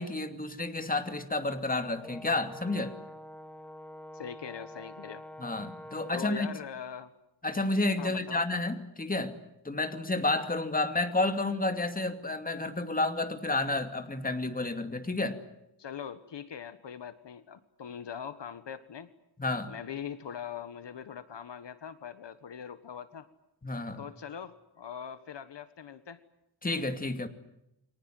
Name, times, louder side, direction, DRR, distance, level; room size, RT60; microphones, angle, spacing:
voice 1, 0.0-3.0 5.4-6.6 7.4-15.4 19.4-19.8 23.6-24.0 26.6-27.3, left 2 dB, 20° left, 8 dB, 2.6 m, -31 dB
Brass instrument, 2.0-6.4, equal, 5° left, 2.9 m, -47 dB
voice 2, 4.1-5.2 6.1-7.1 8.0-8.4 15.8-19.1 19.7-23.3 24.0-26.2, left 8 dB, 65° left, 12 dB, 1.5 m, -42 dB
29.5 x 24.0 x 7.8 m, 0.85 s
wide cardioid pair, 125°, 46 cm